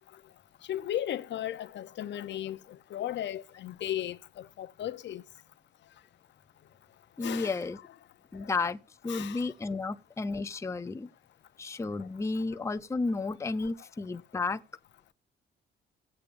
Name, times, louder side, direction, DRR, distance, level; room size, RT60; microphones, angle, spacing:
voice 1, 0.7-5.2 7.2-7.6 8.4-8.5 9.1-9.5, left 12 dB, 65° left, 0.6 m, -36 dB
voice 2, 7.2-7.8 8.3-11.1 11.6-14.6, left 3 dB, 15° left, 0.5 m, -32 dB
16.5 x 8.3 x 2.5 m
cardioid pair, 90°, 20 cm